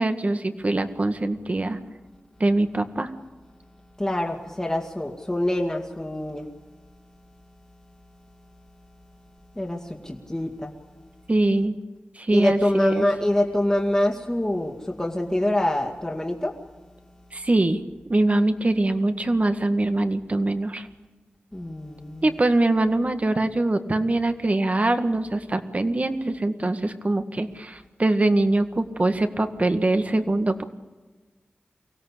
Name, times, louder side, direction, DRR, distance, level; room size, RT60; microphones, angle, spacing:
voice 1, 0.0-1.8 2.4-3.1 11.3-11.8 12.2-13.0 17.3-17.8 18.1-20.9 22.2-30.6, right 2 dB, 40° right, 8 dB, 1.8 m, -23 dB
voice 2, 4.0-6.5 9.6-10.7 12.3-16.6 21.5-22.4, left 1 dB, 15° left, 1 dB, 2.4 m, -25 dB
24.0 x 17.0 x 8.5 m, 1.3 s
wide cardioid pair, 60°, 4 cm